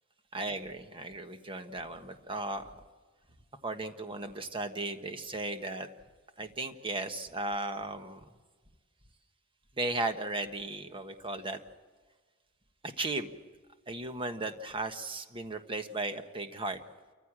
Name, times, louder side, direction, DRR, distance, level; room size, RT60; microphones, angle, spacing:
voice 1, 0.3-2.6 3.6-5.9 6.4-8.2 9.8-11.6 12.8-13.3 13.9-16.8, right 2 dB, 25° right, 7 dB, 1.4 m, -36 dB
28.5 x 15.0 x 7.6 m, 1.4 s
head